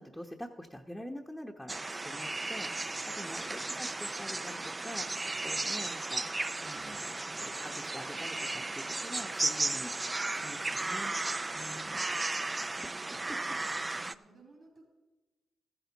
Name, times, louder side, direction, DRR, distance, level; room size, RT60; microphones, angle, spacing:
voice 1, 0.0-11.1 11.5-12.0 12.8-13.4, equal, 5° left, 0 dB, 1.1 m, -46 dB
sound 1, 1.7-14.1, right 2 dB, 30° right, 0.5 m, -35 dB
sound 2, 5.6-11.1, right 4 dB, 75° right, 3.8 m, -56 dB
voice 2, 12.0-13.0 13.7-14.8, right 3 dB, 60° right, -2 dB, 3.0 m, -60 dB
14.0 x 10.5 x 4.1 m, 1.2 s
supercardioid pair, 50°, 0 cm